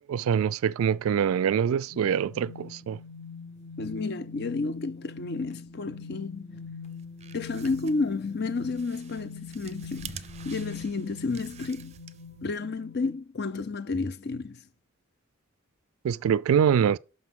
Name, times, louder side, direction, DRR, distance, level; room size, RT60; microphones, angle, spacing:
voice 1, 0.1-3.0 16.0-17.0, right 8 dB, 90° right, 0.3 m, -24 dB
sound 1, 1.9-13.1, left 5 dB, 30° left, 1.1 m, -43 dB
voice 2, 3.8-6.6 7.3-11.9 12.4-14.6, left 3 dB, 50° left, 0.6 m, -31 dB
sound 2, 6.9-12.5, right 7 dB, 30° right, 0.5 m, -47 dB
12.0 x 5.2 x 3.6 m
head